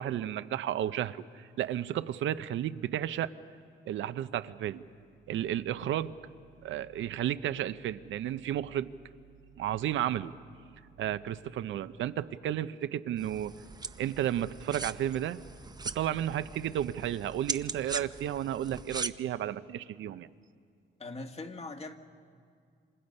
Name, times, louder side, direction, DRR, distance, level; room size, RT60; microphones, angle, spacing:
voice 1, 0.0-3.3 3.9-4.8 5.3-6.1 6.6-8.9 9.6-10.3 11.0-13.5 14.0-15.4 15.8-20.3, right 11 dB, 75° right, 13 dB, 0.7 m, -32 dB
sound 1, 13.2-19.1, right 4 dB, 20° right, 0.8 m, -40 dB
voice 2, 21.0-22.0, left 2 dB, 30° left, 5 dB, 1.8 m, -41 dB
27.5 x 26.5 x 5.5 m, 2.2 s
cardioid pair, 90°, 20 cm